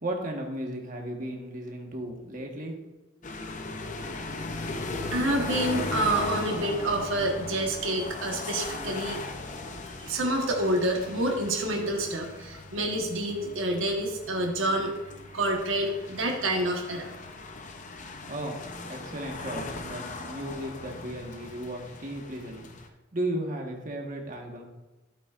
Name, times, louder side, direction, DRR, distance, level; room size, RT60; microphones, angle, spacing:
voice 1, 0.0-2.7 18.3-18.5 18.9-22.7 23.1-24.7, right 1 dB, 40° right, 1 dB, 1.4 m, -35 dB
sound 1, 3.2-22.9, left 2 dB, 40° left, 0.7 m, -38 dB
voice 2, 5.1-9.2 10.0-14.9 15.3-17.2, right 1 dB, 85° right, 0 dB, 1.3 m, -28 dB
12.0 x 8.4 x 2.5 m, 1.1 s
head